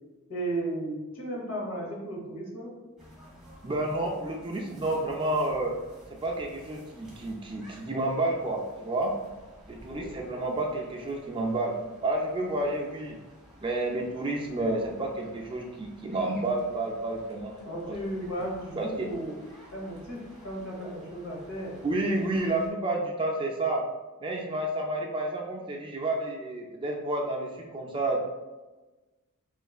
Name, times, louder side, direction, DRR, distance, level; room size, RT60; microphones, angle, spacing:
voice 1, 0.3-2.8 9.9-10.2 17.6-19.4 19.7-21.8, right 1 dB, 70° left, -2 dB, 1.2 m, -35 dB
sound 1, 3.0-22.7, equal, ahead, 1.2 m, -53 dB
voice 2, 3.6-5.7 6.1-9.1 9.7-11.7 12.0-13.2 13.6-17.5 17.9-18.0 18.2-18.3 18.8-19.1 20.9-21.0 21.8-23.9 24.2-28.2, right 2 dB, 25° right, 0 dB, 0.4 m, -30 dB
5.3 x 3.1 x 2.3 m, 1.2 s
head